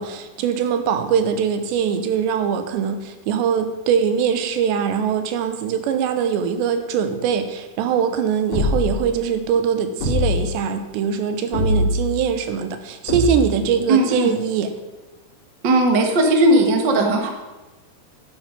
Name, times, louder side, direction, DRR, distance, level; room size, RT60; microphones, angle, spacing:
voice 1, 0.0-14.7, right 7 dB, 90° right, 8 dB, 3.3 m, -22 dB
sound 1, 8.5-9.1 10.0-10.6 11.5-12.1 13.1-13.7, left 2 dB, 55° left, 4.6 m, -22 dB
voice 2, 13.9-14.3 15.6-17.3, right 2 dB, 60° right, 3 dB, 1.1 m, -17 dB
12.0 x 10.5 x 5.2 m, 1.2 s
omnidirectional pair, 4.9 m